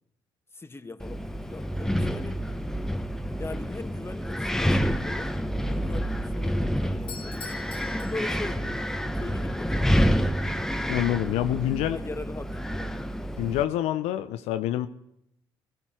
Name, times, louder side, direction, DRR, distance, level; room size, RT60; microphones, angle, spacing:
voice 1, 0.5-2.4 3.4-5.3 5.6-7.4 7.9-8.6 9.1-10.6 11.9-13.0, left 3 dB, 20° left, 1.5 m, -40 dB
Wind, 1.0-13.6, equal, 5° left, 1.2 m, -28 dB
Doorbell, 7.0-8.9, left 7 dB, 50° left, 1.8 m, -44 dB
voice 2, 10.9-12.0 13.4-14.9, left 12 dB, 75° left, 0.7 m, -26 dB
20.0 x 15.0 x 4.5 m
hypercardioid pair, 50°, 11 cm